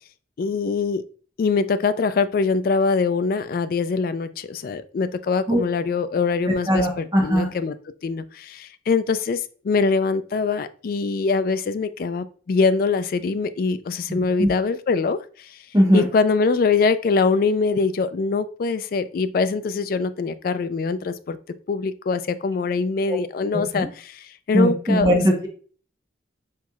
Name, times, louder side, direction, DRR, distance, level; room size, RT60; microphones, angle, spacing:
voice 1, 0.4-1.0 1.4-7.7 8.0-15.6 15.9-21.4 21.7-25.2, left 4 dB, 50° left, 12 dB, 0.3 m, -23 dB
voice 2, 6.7-7.5 14.1-14.5 15.7-16.0 23.1-23.2 23.5-23.9 24.5-25.5, equal, 20° right, 0 dB, 0.8 m, -20 dB
4.5 x 4.1 x 2.3 m, 0.43 s
head